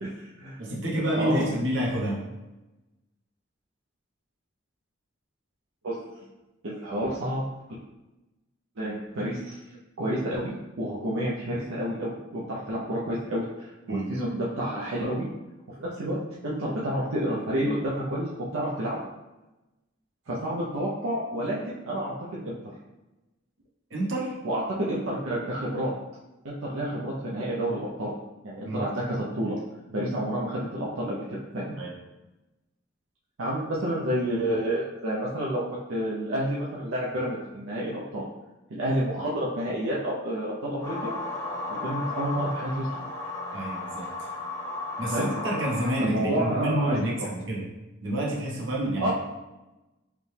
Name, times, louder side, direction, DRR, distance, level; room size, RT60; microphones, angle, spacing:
voice 1, 0.0-0.6 1.1-1.5 5.8-6.0 6.6-7.4 8.8-9.6 10.0-10.5 10.8-15.3 15.8-16.2 16.4-19.0 20.3-22.1 22.4-22.5 24.4-25.9 26.4-28.1 28.4-29.5 29.9-31.8 33.4-38.2 38.7-41.1 41.7-43.0 45.1-45.3 46.0-47.3 49.0-49.1, right 1 dB, 80° right, -6 dB, 0.6 m, -29 dB
voice 2, 0.6-2.2 13.9-14.1 23.9-24.3 28.6-28.9 31.8-31.9 43.5-44.1 45.0-47.6 48.0-49.1, right 1 dB, 65° right, -3 dB, 1.0 m, -28 dB
sound 1, 40.8-45.9, left 2 dB, 15° left, 0.7 m, -34 dB
4.9 x 2.2 x 3.3 m, 1.0 s
head